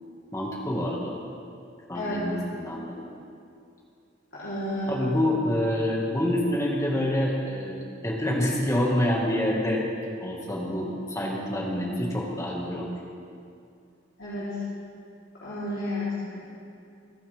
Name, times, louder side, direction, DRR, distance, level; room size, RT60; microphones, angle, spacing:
voice 1, 0.3-1.2 1.9-3.1 4.9-9.8 10.2-12.9, left 1 dB, 15° left, -2 dB, 2.1 m, -27 dB
voice 2, 4.3-4.9 14.2-14.6 15.4-16.1, left 1 dB, 80° left, -12 dB, 4.0 m, -31 dB
28.5 x 9.6 x 3.7 m, 2.5 s
head